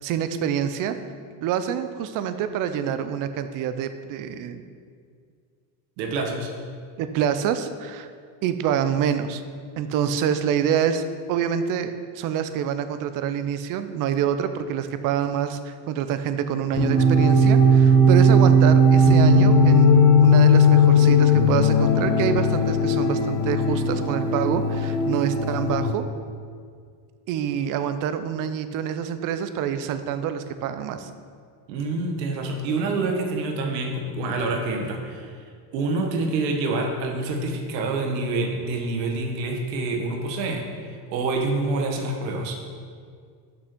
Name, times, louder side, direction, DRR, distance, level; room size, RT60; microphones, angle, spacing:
voice 1, 0.0-1.0 1.4-4.6 7.0-8.1 8.4-9.4 9.8-19.9 20.2-26.0 27.3-31.1, right 8 dB, 40° right, 10 dB, 0.6 m, -26 dB
voice 2, 6.0-6.5 31.7-35.3 35.7-40.7 41.1-42.6, right 3 dB, 80° right, 3 dB, 1.4 m, -27 dB
sound 1, 16.7-25.9, left 1 dB, 30° left, 1.0 m, -17 dB
6.2 x 6.1 x 6.1 m, 2.1 s
supercardioid pair, 130°, 50 cm